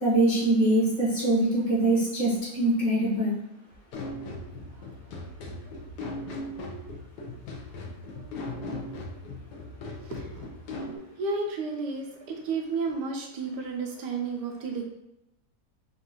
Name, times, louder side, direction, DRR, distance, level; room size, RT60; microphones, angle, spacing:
voice 1, 0.0-3.3, right 1 dB, 60° left, -7 dB, 2.1 m, -23 dB
sound 1, 3.9-11.0, left 1 dB, 75° left, 1.3 m, -38 dB
voice 2, 10.1-10.5 11.2-14.8, right 4 dB, 85° right, 1 dB, 1.4 m, -32 dB
5.8 x 2.5 x 2.9 m, 0.86 s
omnidirectional pair, 1.8 m